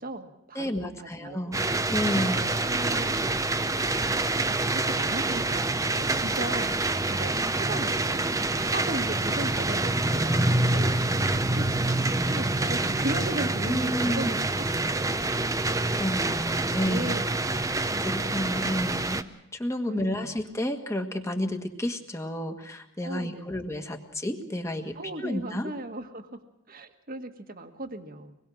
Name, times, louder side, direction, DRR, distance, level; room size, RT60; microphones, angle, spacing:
voice 1, 0.0-1.7 2.0-4.1 4.6-8.3 8.6-10.3 10.7-11.2 11.6-15.4 16.9-17.3 17.9-18.9 19.8-20.3 23.0-23.5 24.9-26.4 26.7-28.4, right 1 dB, 45° right, 7 dB, 1.6 m, -37 dB
voice 2, 0.5-1.6 1.9-2.4 13.7-14.4 15.9-17.1 18.0-19.2 19.5-25.7, left 1 dB, 15° left, 5 dB, 1.7 m, -31 dB
sound 1, 1.5-19.2, right 2 dB, 15° right, 0.7 m, -26 dB
25.0 x 20.5 x 6.4 m, 0.82 s
head